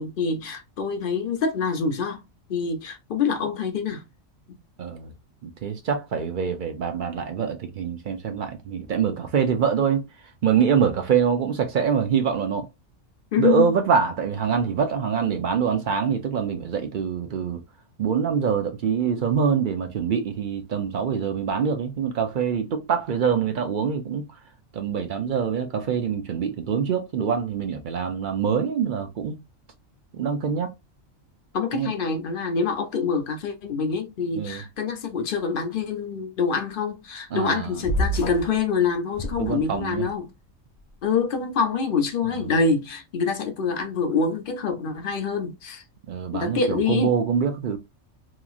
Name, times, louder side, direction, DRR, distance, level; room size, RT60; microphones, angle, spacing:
voice 1, 0.0-2.2 2.5-4.0 4.5-4.6 13.3-13.8 31.5-40.3 41.0-45.8 46.3-47.2, left 5 dB, 55° left, 0.7 m, -26 dB
voice 2, 4.8-5.1 5.4-10.0 10.4-12.6 13.4-17.6 18.0-24.2 24.7-29.4 30.1-30.7 31.7-31.9 34.4-34.6 37.3-37.7 39.4-40.1 46.1-47.8, right 7 dB, 60° right, 0.5 m, -24 dB
sound 1, 37.8-38.6 39.1-40.0, equal, 85° left, 0.3 m, -28 dB
2.9 x 2.4 x 2.4 m
omnidirectional pair, 1.4 m